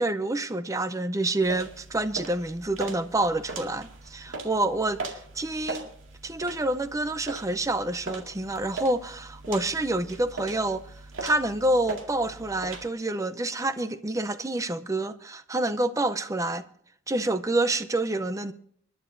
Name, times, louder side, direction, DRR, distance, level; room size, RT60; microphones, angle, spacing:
voice 1, 0.0-5.9 6.2-10.9 11.2-16.6 17.1-18.5, right 2 dB, 15° right, 0.5 m, -28 dB
sound 1, 1.4-12.9, right 3 dB, 80° right, 2.1 m, -40 dB
27.0 x 11.0 x 2.6 m
head